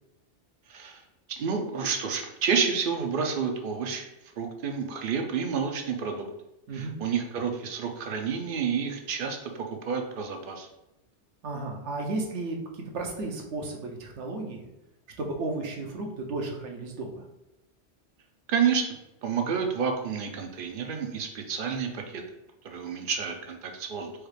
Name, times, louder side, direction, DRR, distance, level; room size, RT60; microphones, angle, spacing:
voice 1, 0.7-1.0 1.4-4.1 4.4-6.3 6.7-9.5 9.8-10.7 18.5-18.8 19.2-22.2 22.6-24.1, right 6 dB, 60° right, 4 dB, 0.7 m, -29 dB
voice 2, 11.4-14.7 15.2-17.2, right 2 dB, 80° right, 1 dB, 1.1 m, -34 dB
4.6 x 2.4 x 3.3 m, 0.92 s
omnidirectional pair, 1.2 m